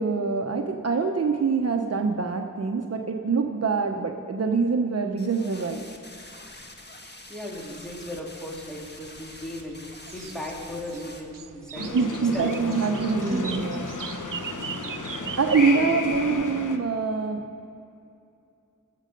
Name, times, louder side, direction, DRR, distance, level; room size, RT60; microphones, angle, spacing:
voice 1, 0.0-5.8 11.8-13.8 15.4-17.5, right 4 dB, 50° right, 4 dB, 0.8 m, -25 dB
sound 1, 5.2-11.2, left 2 dB, 30° left, 1.5 m, -45 dB
voice 2, 7.3-9.8 10.1-12.5 13.2-13.5 15.6-15.9, equal, ahead, -2 dB, 3.0 m, -36 dB
sound 2, 8.5-16.5, right 7 dB, 90° right, 0.6 m, -41 dB
sound 3, 11.7-16.8, left 3 dB, 70° left, 1.0 m, -33 dB
19.0 x 7.6 x 5.2 m, 2.6 s
cardioid pair, 45°, 32 cm